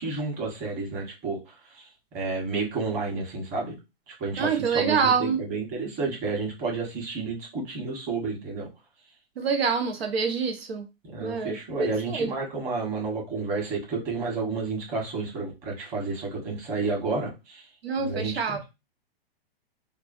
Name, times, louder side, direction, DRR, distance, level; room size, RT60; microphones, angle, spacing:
voice 1, 0.0-1.9 2.1-3.7 4.1-8.7 11.0-17.7 18.0-18.6, right 4 dB, 30° right, 1.4 m, -31 dB
voice 2, 4.4-5.4 9.4-10.8 11.2-12.3 17.8-18.6, right 5 dB, 85° right, 0.8 m, -26 dB
3.1 x 2.4 x 2.6 m
hypercardioid pair, 135°, 30 cm